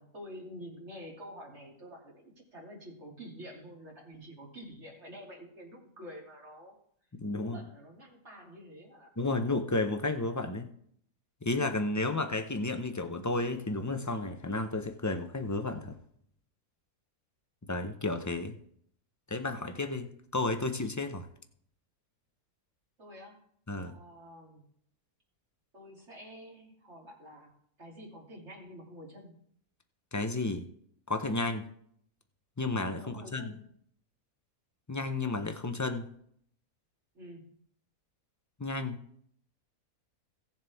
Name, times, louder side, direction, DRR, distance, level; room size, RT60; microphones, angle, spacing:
voice 1, 0.0-6.8 7.3-9.1 23.0-23.4 23.8-24.6 25.7-29.4 33.0-33.6 37.1-37.6, equal, 50° right, -2 dB, 3.0 m, -48 dB
voice 2, 7.2-7.6 9.2-10.7 11.4-16.0 17.7-18.6 19.3-20.1 20.3-21.3 23.7-24.0 30.1-30.7 31.1-31.7 32.6-33.5 34.9-36.1 38.6-38.9, left 2 dB, 25° left, 6 dB, 0.4 m, -32 dB
17.0 x 7.2 x 3.5 m, 0.66 s
omnidirectional pair, 1.6 m